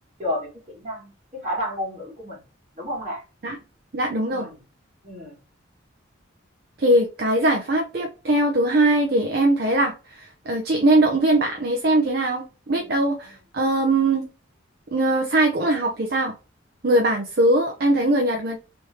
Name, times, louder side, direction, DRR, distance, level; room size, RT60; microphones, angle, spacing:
voice 1, 0.8-2.4 2.8-3.2 4.3-4.5 5.0-5.3 12.7-12.9, equal, 35° right, 2.0 m, -31 dB
voice 2, 3.9-4.5 6.8-14.3 14.9-16.3 16.8-18.6, right 1 dB, 50° right, 0.6 m, -21 dB
3.5 x 3.2 x 2.8 m
head